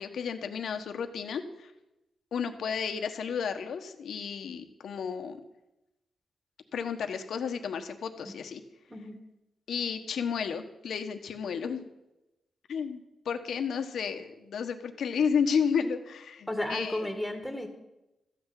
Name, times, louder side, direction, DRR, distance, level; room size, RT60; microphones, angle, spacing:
voice 1, 0.0-1.7 2.3-5.4 6.7-8.6 9.7-11.9 12.7-17.1, left 6 dB, 75° left, 7 dB, 1.3 m, -32 dB
voice 2, 16.5-17.7, left 1 dB, ahead, 5 dB, 2.0 m, -33 dB
14.0 x 6.2 x 9.1 m, 0.93 s
wide cardioid pair, 125°, 0 cm